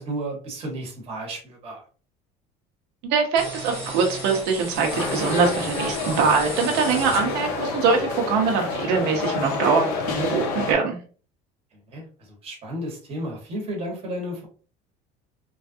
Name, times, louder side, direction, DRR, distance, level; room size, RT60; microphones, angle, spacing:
voice 1, 0.0-1.8 11.9-14.5, right 1 dB, 30° right, -1 dB, 1.2 m, -33 dB
voice 2, 3.0-11.0, right 5 dB, 65° right, 1 dB, 0.8 m, -23 dB
sound 1, 3.4-7.7, right 2 dB, 15° right, 1.4 m, -35 dB
sound 2, 4.9-10.7, left 4 dB, 85° left, 0.9 m, -29 dB
3.2 x 2.4 x 2.6 m, 0.39 s
cardioid pair, 165°, 19 cm